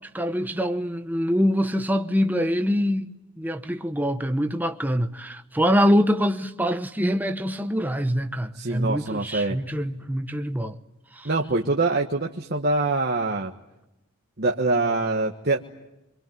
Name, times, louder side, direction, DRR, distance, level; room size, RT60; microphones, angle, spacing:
voice 1, 0.1-3.1 3.4-10.8 11.2-11.3, equal, 10° right, 1.0 m, -24 dB
voice 2, 8.5-9.6 11.2-13.5 14.4-15.6, right 3 dB, 45° right, 1.4 m, -24 dB
25.5 x 23.5 x 9.3 m
head